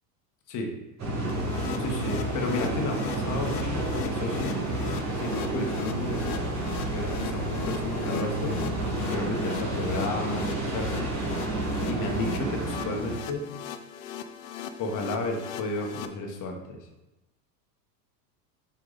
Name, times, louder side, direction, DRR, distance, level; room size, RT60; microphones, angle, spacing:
sound 1, 1.0-13.2, right 2 dB, 35° right, 2.2 m, -30 dB
sound 2, 1.3-16.1, left 9 dB, 65° left, 0.7 m, -39 dB
voice 1, 1.8-4.6 5.2-6.5 6.9-8.6 9.0-11.2 11.9-13.5 14.8-16.8, left 2 dB, 40° left, 2 dB, 1.4 m, -33 dB
5.7 x 4.8 x 4.0 m, 1.0 s
supercardioid pair, 110°, 49 cm